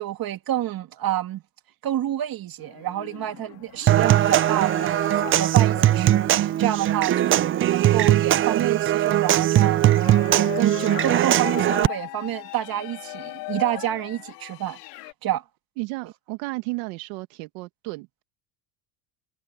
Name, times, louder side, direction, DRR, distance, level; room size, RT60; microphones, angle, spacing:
voice 1, 0.0-1.4 1.8-10.0 10.3-14.8 15.2-15.4, right 13 dB, 45° right, 2.3 m, -28 dB
sound 1, 2.6-15.1, left 26 dB, 85° left, 2.9 m, -39 dB
Human voice / Acoustic guitar / Percussion, 3.9-11.9, right 12 dB, 30° right, 0.4 m, -20 dB
voice 2, 15.8-18.2, right 24 dB, 85° right, 1.9 m, -33 dB
supercardioid pair, 110°, 47 cm